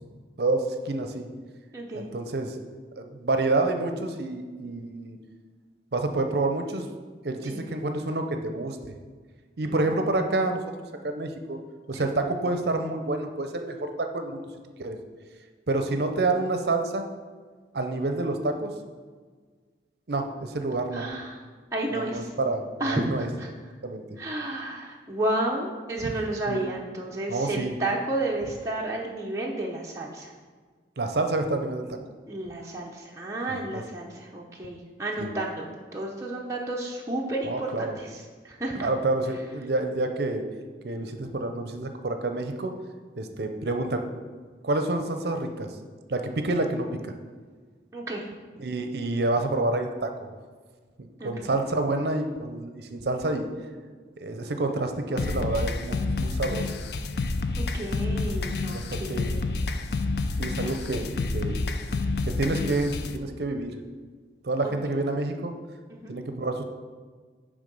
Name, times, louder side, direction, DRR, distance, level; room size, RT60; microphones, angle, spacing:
voice 1, 0.4-1.3 1.9-2.6 3.0-5.2 5.9-6.9 7.2-8.8 9.6-10.6 11.0-11.6 11.9-14.5 14.8-15.0 15.7-17.0 17.7-18.7 20.1-21.1 21.9-23.3 23.8-24.0 26.0-26.1 26.5-26.6 27.3-27.7 31.0-32.0 33.5-33.8 35.2-35.3 37.4-38.0 38.8-40.4 40.8-42.7 43.2-44.0 44.6-45.7 46.1-47.1 48.6-50.3 51.0-53.5 54.2-56.7 58.6-59.5 60.4-61.1 61.3-61.6 62.3-63.8 64.4-65.5 66.1-66.6, right 2 dB, 60° right, 6 dB, 0.6 m, -28 dB
voice 2, 1.7-2.1 7.4-7.6 9.6-9.8 12.0-12.1 20.9-21.4 21.7-22.3 22.8-23.5 24.2-30.3 32.3-38.9 47.9-48.3 51.2-51.5 57.6-59.4 60.4-60.5 60.7-60.8 64.6-64.7 65.9-66.1, right 1 dB, 15° right, -3 dB, 0.7 m, -32 dB
sound 1, 55.2-63.2, left 3 dB, 65° left, 0.5 m, -29 dB
10.0 x 3.6 x 5.3 m, 1.5 s
head